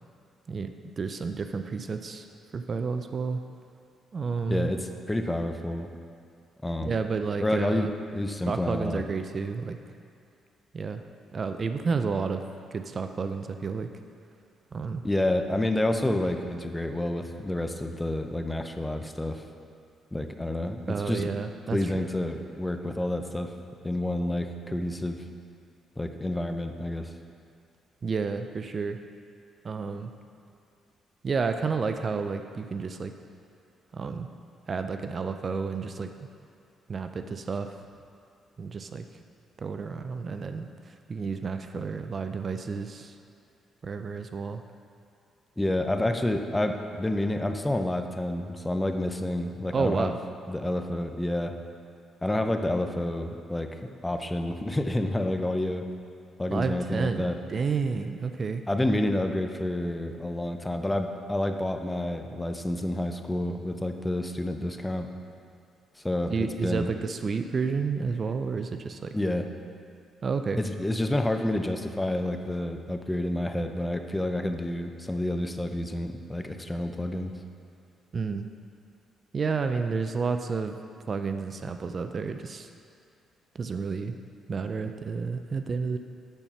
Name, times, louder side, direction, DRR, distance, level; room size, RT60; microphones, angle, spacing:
voice 1, 1.0-2.3 2.5-3.4 4.1-4.7 6.8-7.9 8.5-9.8 10.7-11.0 11.3-12.4 12.7-13.9 14.7-15.0 20.9-22.1 28.0-29.0 29.6-30.1 31.2-33.1 33.9-34.3 34.7-36.3 36.9-37.7 38.6-39.0 39.6-43.2 43.8-44.6 49.7-50.1 56.5-58.6 66.3-69.1 70.2-70.6 78.1-78.5 79.3-80.8 81.1-82.7 83.5-84.1 84.5-86.0, right 5 dB, 40° right, 7 dB, 0.4 m, -30 dB
voice 2, 4.5-5.9 6.6-6.9 7.4-9.0 15.0-19.4 20.1-21.3 21.7-23.5 23.8-25.2 26.0-27.1 45.6-50.2 50.5-51.5 52.2-55.9 56.4-57.4 58.7-65.1 66.0-66.9 69.1-69.5 70.6-77.3, left 1 dB, 10° left, 6 dB, 0.6 m, -29 dB
8.8 x 4.2 x 6.0 m, 2.4 s
cardioid pair, 90°, 0 cm